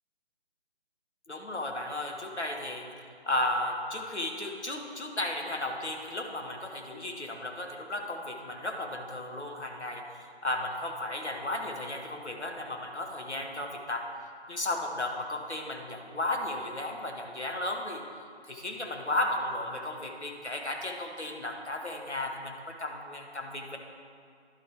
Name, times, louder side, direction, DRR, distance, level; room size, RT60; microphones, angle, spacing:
voice 1, 1.3-2.9 3.3-14.1 14.5-18.0 18.4-23.8, left 1 dB, 80° left, 2 dB, 1.4 m, -34 dB
11.5 x 4.5 x 4.8 m, 2.3 s
figure-of-eight pair, 150°, 33 cm